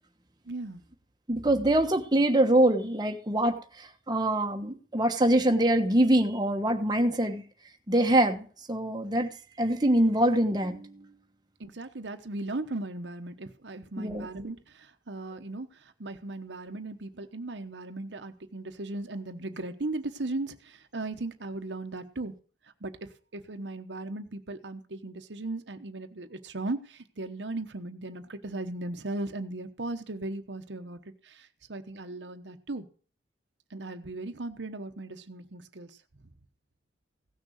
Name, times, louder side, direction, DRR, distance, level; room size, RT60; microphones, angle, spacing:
voice 1, 0.5-0.8 11.6-22.3 22.8-32.9 33.7-36.0, right 2 dB, 80° right, 7 dB, 1.1 m, -37 dB
voice 2, 1.3-7.4 7.9-9.3 9.6-11.1 14.0-14.3, right 1 dB, 25° right, 4 dB, 1.2 m, -24 dB
16.5 x 6.5 x 6.4 m, 0.41 s
head